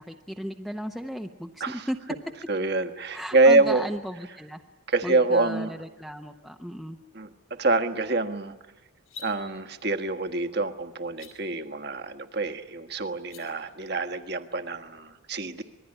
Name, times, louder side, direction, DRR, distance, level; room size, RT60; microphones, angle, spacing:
voice 1, 0.0-2.0 3.1-4.6 5.0-7.0, equal, ahead, 4 dB, 0.8 m, -35 dB
voice 2, 2.5-3.9 4.9-5.7 7.1-8.5 9.2-15.6, right 3 dB, 50° right, 7 dB, 1.5 m, -26 dB
sound 1, 9.0-9.3 11.1-11.3 13.1-13.4, left 3 dB, 90° left, 5.7 m, -42 dB
26.5 x 21.0 x 9.9 m, 1.1 s
head